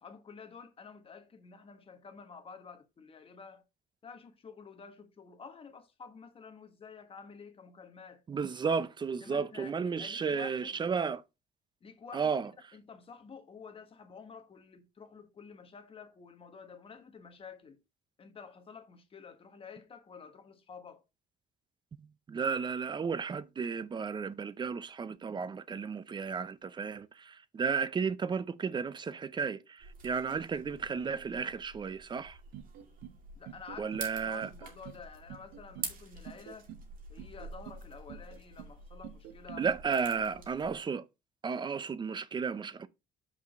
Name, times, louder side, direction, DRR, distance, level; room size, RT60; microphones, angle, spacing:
voice 1, 0.0-3.6 4.0-8.2 9.2-10.8 11.8-17.8 18.2-21.0 33.3-36.7 37.1-40.4, left 5 dB, 35° left, 1.3 m, -50 dB
voice 2, 8.3-11.2 12.1-12.5 22.3-32.4 33.8-34.5 39.6-41.0 41.4-42.9, right 5 dB, 25° right, 0.6 m, -33 dB
sound 1, 29.8-40.8, right 4 dB, 55° right, 2.2 m, -48 dB
sound 2, 32.5-33.2 33.5-34.1 34.4-35.0 35.3-35.9 36.3-36.9 37.2-37.8 38.1-38.7 39.0-39.7, right 11 dB, 85° right, 0.8 m, -47 dB
5.9 x 4.9 x 4.0 m
cardioid pair, 110°, 17 cm